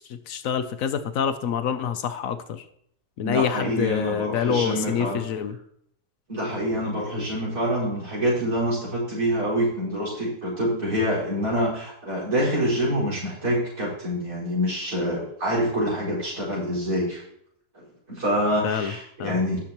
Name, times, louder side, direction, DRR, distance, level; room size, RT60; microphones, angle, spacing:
voice 1, 0.0-2.6 3.2-5.6 18.6-18.9 19.2-19.4, left 8 dB, 65° left, 10 dB, 1.0 m, -26 dB
voice 2, 3.2-5.2 6.3-17.2 17.7-19.6, equal, 70° right, -6 dB, 5.3 m, -26 dB
18.0 x 6.3 x 3.0 m, 0.70 s
omnidirectional pair, 1.7 m